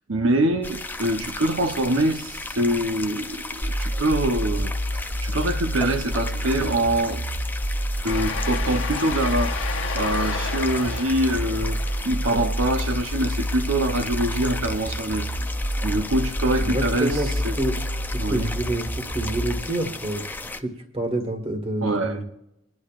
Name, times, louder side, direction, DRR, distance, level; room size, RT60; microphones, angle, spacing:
voice 1, 0.1-7.2 8.0-15.3 15.8-17.2 17.4-17.6 18.2-18.5 21.8-22.2, right 1 dB, 75° right, 0.8 m, -24 dB
sound 1, 0.6-20.6, left 2 dB, 10° left, 0.4 m, -36 dB
sound 2, 3.6-19.6, equal, 25° left, 1.6 m, -28 dB
Train, 8.1-14.2, left 5 dB, 80° left, 1.1 m, -34 dB
voice 2, 16.6-17.3 17.6-17.7 18.1-22.2, right 1 dB, 30° right, 1.7 m, -28 dB
25.5 x 10.5 x 2.5 m
head